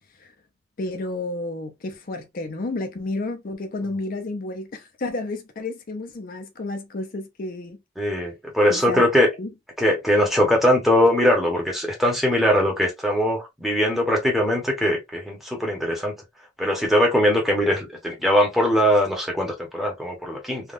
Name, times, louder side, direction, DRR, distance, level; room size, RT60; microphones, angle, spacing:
voice 1, 0.8-7.8 8.7-9.1 9.4-9.5, left 2 dB, 45° left, 0.5 m, -31 dB
voice 2, 8.0-9.3 9.8-16.1 16.6-20.7, equal, ahead, 0.9 m, -21 dB
3.5 x 2.3 x 2.4 m
head